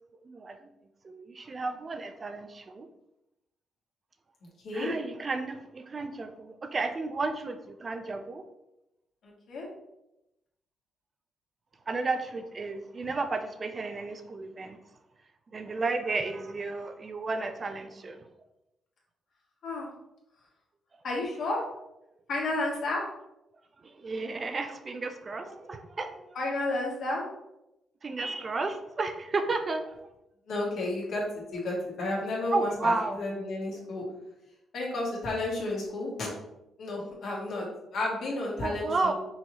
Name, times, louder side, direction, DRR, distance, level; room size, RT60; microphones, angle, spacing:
voice 1, 0.2-0.7 1.0-2.9 4.7-8.5 11.9-14.8 15.5-18.3 23.8-26.4 28.0-30.1 32.5-33.3 38.6-39.1, right 3 dB, 35° right, 7 dB, 0.4 m, -33 dB
voice 2, 21.0-21.6 22.3-23.0 26.4-27.2 30.5-34.0 34.7-36.3 36.8-37.7 37.9-39.1, left 2 dB, 65° left, -3 dB, 1.7 m, -31 dB
5.5 x 3.0 x 2.9 m, 0.88 s
cardioid pair, 90°, 0 cm